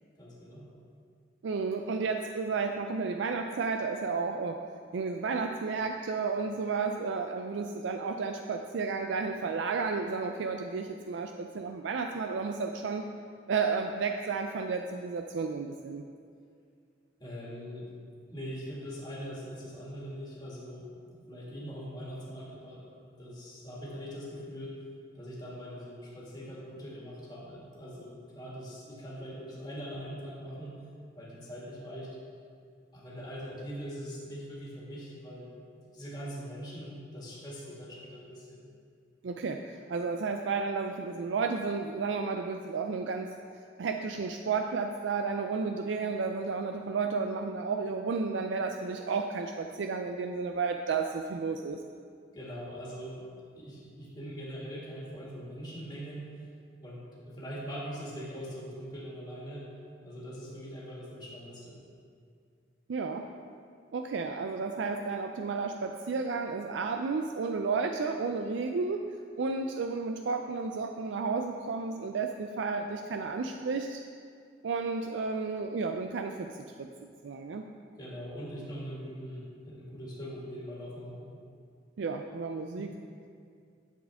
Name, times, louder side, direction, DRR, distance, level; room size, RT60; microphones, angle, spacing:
voice 1, 0.2-0.7 17.2-17.9 18.3-22.9 23.2-24.8 25.1-30.8 31.2-32.2 32.9-35.5 35.9-38.6 52.3-53.2 53.6-56.3 56.8-59.7 60.0-61.8 78.0-81.3 82.7-82.9, equal, 25° left, -6 dB, 2.0 m, -42 dB
voice 2, 1.4-4.6 4.9-13.1 13.5-16.0 39.2-43.3 43.8-51.8 62.9-63.2 63.9-69.0 69.4-74.0 74.6-76.5 76.8-77.7 82.0-82.9, right 4 dB, 80° right, 4 dB, 0.4 m, -32 dB
10.5 x 7.3 x 3.6 m, 2.3 s
head